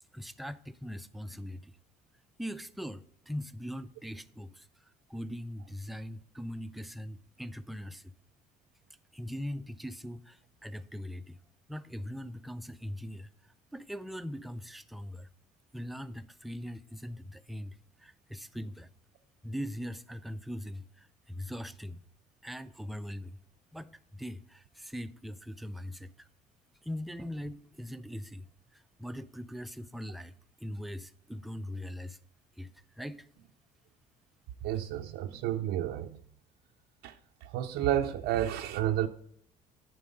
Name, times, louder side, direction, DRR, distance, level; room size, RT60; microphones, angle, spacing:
voice 1, 0.1-1.8 2.4-8.1 9.1-11.4 11.7-15.3 15.7-18.9 19.4-22.0 22.4-23.4 23.7-26.3 26.8-32.2 32.6-33.3, equal, ahead, 0.4 m, -41 dB
voice 2, 34.6-36.2 37.0-37.1 37.4-39.1, right 12 dB, 90° right, 0.5 m, -31 dB
10.5 x 4.6 x 5.3 m
cardioid pair, 110°, 17 cm